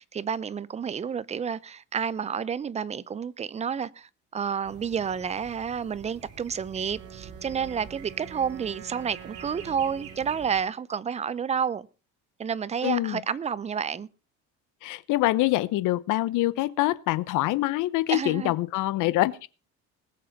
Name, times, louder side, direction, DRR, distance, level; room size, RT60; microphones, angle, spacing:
voice 1, 0.0-11.9 12.4-14.1 18.1-18.5, right 7 dB, 20° right, 0.6 m, -30 dB
sound 1, 4.6-10.6, right 6 dB, 50° right, 6.1 m, -47 dB
Wind instrument woodwind instrument, 6.8-10.8, right 9 dB, 80° right, 2.5 m, -47 dB
voice 2, 12.8-13.2 14.8-19.5, left 17 dB, 75° left, 1.0 m, -25 dB
19.5 x 7.7 x 5.8 m
cardioid pair, 145°, 31 cm